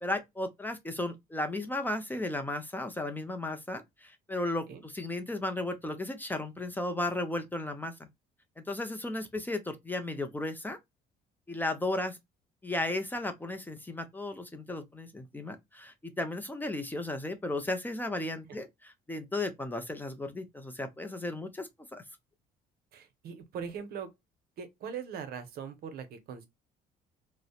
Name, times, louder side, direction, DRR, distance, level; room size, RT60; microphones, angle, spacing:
voice 1, 0.0-7.9 8.7-10.8 11.5-12.2 12.6-22.0, left 2 dB, 10° left, 0.4 m, -35 dB
voice 2, 22.9-24.1 24.6-26.5, right 7 dB, 65° right, 0.7 m, -40 dB
2.6 x 2.0 x 2.3 m
cardioid pair, 110°, 17 cm